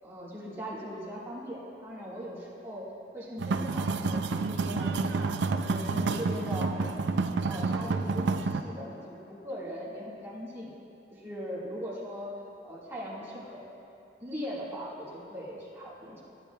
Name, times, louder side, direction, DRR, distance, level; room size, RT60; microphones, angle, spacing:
voice 1, 0.0-2.9 3.1-6.9 7.4-10.7 11.1-12.3 12.6-13.7 14.2-16.2, equal, 15° right, -7 dB, 1.7 m, -40 dB
sound 1, 3.4-8.6, right 3 dB, 75° right, 0.4 m, -29 dB
14.5 x 10.0 x 2.3 m, 2.8 s
head